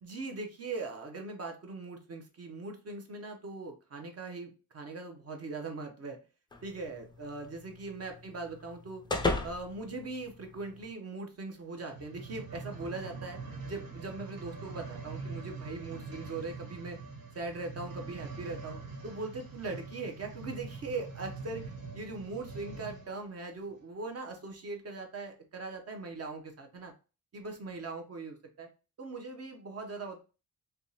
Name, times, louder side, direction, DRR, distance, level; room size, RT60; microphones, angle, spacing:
voice 1, 0.0-6.2 6.6-9.0 9.4-13.4 13.7-17.0 17.3-26.9 27.3-28.7 29.0-30.2, right 3 dB, 40° right, 4 dB, 0.7 m, -40 dB
sound 1, 6.5-10.9, left 3 dB, 15° left, 0.3 m, -37 dB
sound 2, 11.8-23.2 23.8-23.9, right 4 dB, 65° right, 1.0 m, -44 dB
3.4 x 2.8 x 2.7 m, 0.32 s
wide cardioid pair, 170°, 37 cm